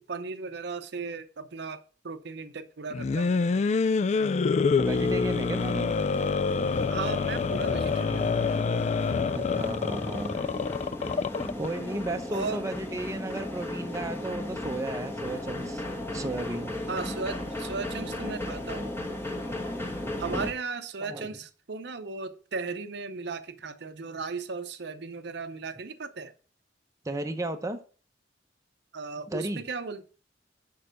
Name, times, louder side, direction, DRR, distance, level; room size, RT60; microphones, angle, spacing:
voice 1, 0.0-3.4 6.9-8.4 12.3-12.6 16.9-19.0 20.2-26.3 28.9-30.1, right 4 dB, 65° right, 0.7 m, -36 dB
sound 1, 2.9-11.7, left 4 dB, 40° left, 0.3 m, -26 dB
sound 2, 4.8-20.5, left 1 dB, 15° left, 1.5 m, -36 dB
voice 2, 4.8-5.9 9.3-10.4 11.6-15.8 16.1-16.8 21.0-21.3 27.0-27.8 29.3-29.6, right 1 dB, 20° right, 0.8 m, -34 dB
6.7 x 5.5 x 6.3 m
head